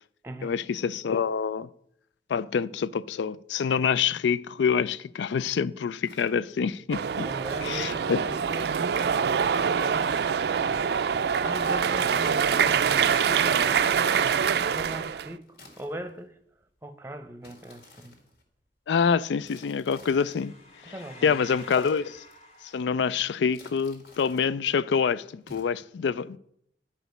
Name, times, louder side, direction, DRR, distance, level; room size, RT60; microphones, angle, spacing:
voice 1, 0.4-1.7 2.3-7.3 7.6-8.2 18.9-20.5 20.8-20.9 21.2-22.2 22.7-26.4, left 6 dB, 85° left, 0.4 m, -26 dB
sound 1, 6.0-6.4 7.4-8.3 9.5-10.4 11.4-12.4 13.4-14.3 15.4-16.3 17.4-18.4 19.4-20.5 21.4-22.4 23.4-24.5 25.4-25.6, left 2 dB, 60° left, 1.9 m, -53 dB
sound 2, 6.9-15.3, right 7 dB, 65° right, 0.4 m, -25 dB
voice 2, 7.2-8.0 8.3-8.8 9.8-10.3 10.5-10.9 11.4-14.4 14.7-15.4 15.8-16.3 16.8-18.1 20.9-21.4, right 1 dB, 15° right, 0.7 m, -40 dB
sound 3, 7.9-15.0 19.3-19.5 19.8-22.8, left 2 dB, 35° left, 1.8 m, -54 dB
10.0 x 5.0 x 6.5 m
head